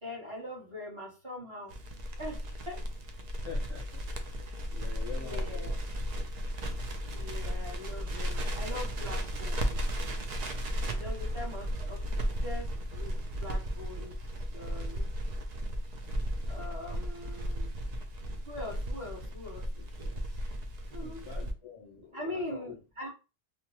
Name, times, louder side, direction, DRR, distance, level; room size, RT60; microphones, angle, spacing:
voice 1, 0.0-1.8 2.2-2.8 4.4-4.5 5.1-5.7 7.1-9.8 11.0-12.0 12.4-14.2 14.5-15.2 16.4-17.7 18.4-20.2 20.9-21.2 22.1-23.1, left 2 dB, 25° right, -6 dB, 1.2 m, -42 dB
Crackle, 1.7-21.5, equal, 60° right, 0.4 m, -35 dB
voice 2, 3.4-4.2 4.7-5.7 20.9-22.8, left 5 dB, 30° left, -4 dB, 0.6 m, -46 dB
2.9 x 2.1 x 3.0 m, 0.32 s
omnidirectional pair, 1.2 m